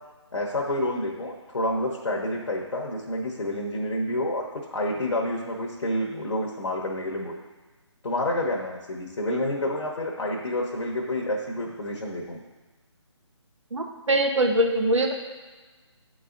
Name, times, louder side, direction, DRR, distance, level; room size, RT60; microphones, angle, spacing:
voice 1, 0.3-7.4 8.0-12.4, left 1 dB, 75° left, -2 dB, 1.0 m, -29 dB
voice 2, 13.7-15.1, right 1 dB, 80° right, 3 dB, 1.0 m, -23 dB
9.8 x 4.1 x 2.5 m, 1.3 s
figure-of-eight pair, 155°, 15 cm